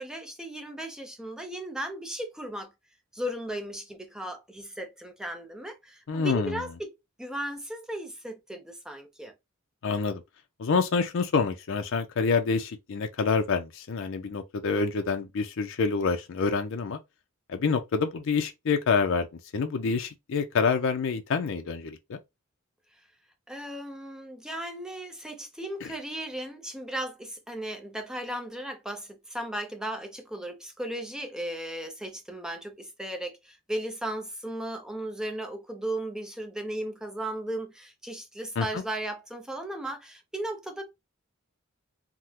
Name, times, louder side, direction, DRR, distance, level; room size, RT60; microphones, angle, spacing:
voice 1, 0.0-2.7 3.1-9.3 23.5-40.8, right 1 dB, 5° right, 0.5 m, -36 dB
voice 2, 6.1-6.6 9.8-10.2 10.6-17.0 17.5-19.3 19.5-22.2 25.8-25.9 38.6-38.8, left 5 dB, 65° left, 0.4 m, -27 dB
3.5 x 2.0 x 2.8 m
head